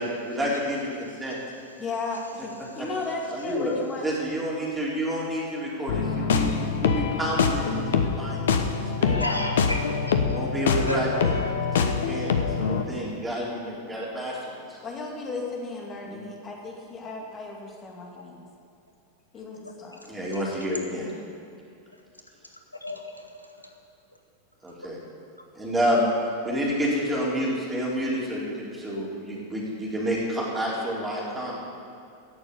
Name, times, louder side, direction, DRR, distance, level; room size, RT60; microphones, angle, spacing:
voice 1, 0.2-1.4 3.3-3.7 4.0-8.7 9.0-9.4 10.2-14.8 16.1-16.2 20.0-21.1 24.6-25.0 25.6-26.1 26.4-31.6, equal, 15° right, -5 dB, 4.2 m, -29 dB
voice 2, 1.8-4.0 14.8-18.4 19.3-20.0 20.9-21.3, left 3 dB, 25° left, -1 dB, 2.4 m, -35 dB
sound 1, 5.9-12.8, left 5 dB, 60° left, 0.9 m, -25 dB
voice 3, 9.1-11.0 18.2-18.3 19.9-20.0 22.8-23.7, left 1 dB, 85° left, 4 dB, 1.1 m, -34 dB
16.0 x 7.0 x 8.4 m, 2.6 s
figure-of-eight pair, 90°, 0 cm